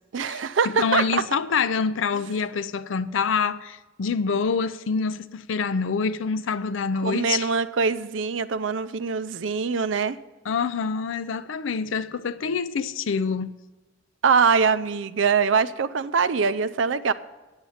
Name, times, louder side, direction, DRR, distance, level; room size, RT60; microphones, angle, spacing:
voice 1, 0.1-1.2 7.0-10.2 14.2-17.1, right 5 dB, 80° right, 0.5 m, -23 dB
voice 2, 0.8-7.5 10.5-13.5, left 5 dB, 85° left, 0.5 m, -26 dB
9.2 x 8.8 x 5.6 m
head